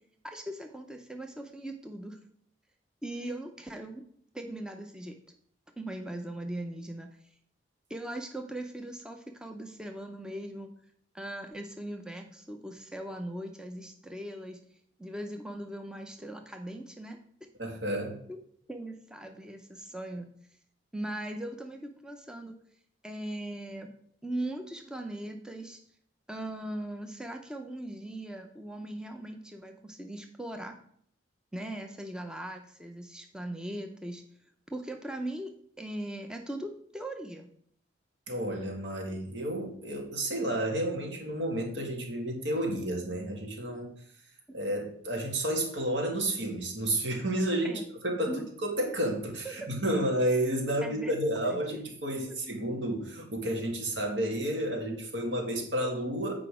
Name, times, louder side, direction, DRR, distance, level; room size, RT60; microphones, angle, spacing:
voice 1, 0.2-2.2 3.0-4.0 4.3-5.1 5.8-7.1 7.9-10.7 11.1-14.6 15.0-17.5 18.3-18.4 18.7-20.3 20.9-22.5 23.0-23.9 24.2-25.8 26.3-30.7 31.5-34.2 34.7-35.5 35.8-37.5 47.6-47.8 48.2-48.4 49.4-49.7 50.8-51.2 51.4-51.8, right 1 dB, 5° right, 4 dB, 0.5 m, -39 dB
voice 2, 17.6-18.2 38.3-43.9 44.5-56.3, right 1 dB, 70° right, 1 dB, 2.0 m, -31 dB
8.0 x 5.0 x 4.8 m, 0.64 s
head